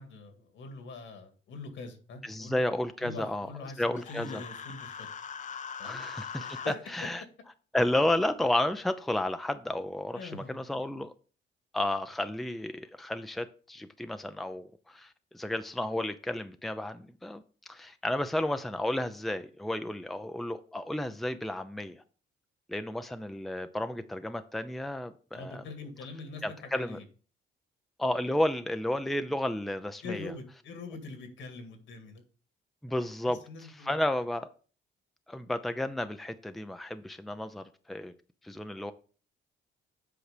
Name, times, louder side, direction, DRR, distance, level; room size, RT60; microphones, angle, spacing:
voice 1, 0.0-2.6 3.0-5.1 5.8-6.0 6.3-6.8 10.1-10.6 25.3-27.0 30.0-32.2 32.9-34.0, left 3 dB, 75° left, 2.0 m, -43 dB
voice 2, 2.2-3.5 3.8-4.4 5.8-7.2 7.7-11.1 11.7-17.4 17.7-22.0 22.7-25.6 26.4-27.0 28.0-30.3 32.8-33.4 33.8-34.5 35.3-38.1 38.4-38.9, left 1 dB, ahead, 0.6 m, -32 dB
Human voice, 4.0-6.8, left 7 dB, 40° left, 0.7 m, -41 dB
8.0 x 4.8 x 5.0 m
cardioid pair, 90°, 20 cm